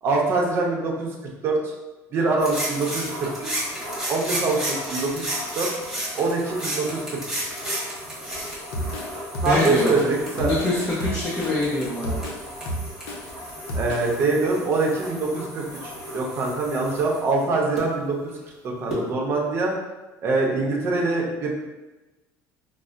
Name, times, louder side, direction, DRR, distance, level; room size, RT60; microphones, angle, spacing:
voice 1, 0.0-1.1 1.4-1.7 2.1-3.7 4.0-5.3 5.5-5.7 6.1-7.2 9.4-10.5 13.7-18.3 18.6-19.7 20.2-21.5, right 3 dB, 35° right, -1 dB, 0.7 m, -24 dB
sound 1, 2.4-17.8 18.9-19.0, equal, ahead, 1.3 m, -33 dB
Drum kit, 8.2-14.1, equal, 80° left, 0.6 m, -31 dB
voice 2, 9.4-9.9 10.4-12.2, left 2 dB, 25° left, -6 dB, 0.6 m, -24 dB
5.2 x 2.0 x 2.5 m, 1.1 s
cardioid pair, 145°, 6 cm